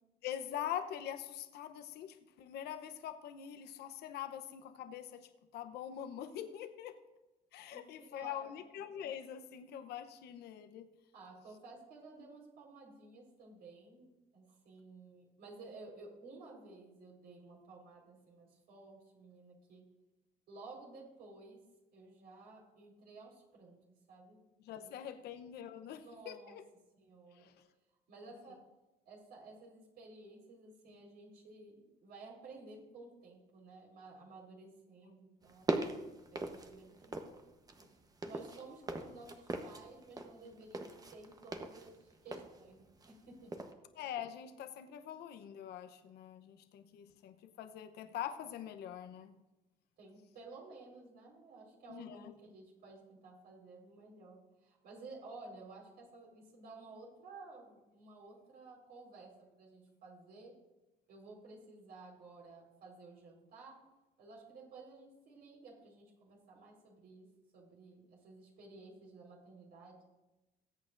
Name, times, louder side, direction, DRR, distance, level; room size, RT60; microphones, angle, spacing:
voice 1, 0.2-7.0 7.5-10.9 24.6-26.6 27.3-27.5 44.0-49.4 51.9-52.3, left 10 dB, 75° left, 8 dB, 0.9 m, -44 dB
voice 2, 7.7-8.6 11.1-19.8 20.5-21.6 21.9-23.8 24.1-24.4 24.8-24.9 25.8-26.6 27.0-27.5 28.1-28.6 29.0-35.7 36.3-37.4 37.8-37.9 38.2-43.5 50.0-60.5 61.1-63.8 64.2-67.3 67.5-70.0, right 3 dB, 70° right, -2 dB, 4.5 m, -54 dB
sound 1, 35.4-37.4 37.7-43.2 43.5-43.7, right 2 dB, 20° right, 1.0 m, -41 dB
20.0 x 8.6 x 2.6 m, 1.0 s
cardioid pair, 110°, 17 cm